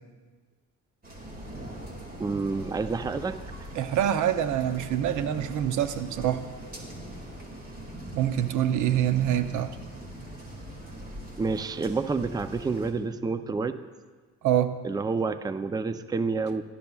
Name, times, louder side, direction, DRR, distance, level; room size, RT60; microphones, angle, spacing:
sound 1, 1.0-12.9, right 1 dB, 30° right, 2.2 m, -41 dB
voice 1, 2.2-3.4 11.4-13.8 14.8-16.6, right 4 dB, 15° right, 11 dB, 0.4 m, -29 dB
voice 2, 3.7-6.5 8.1-9.8 14.4-14.8, right 10 dB, 80° right, 11 dB, 0.7 m, -25 dB
17.5 x 12.0 x 2.3 m, 1.4 s
cardioid pair, 90°, 30 cm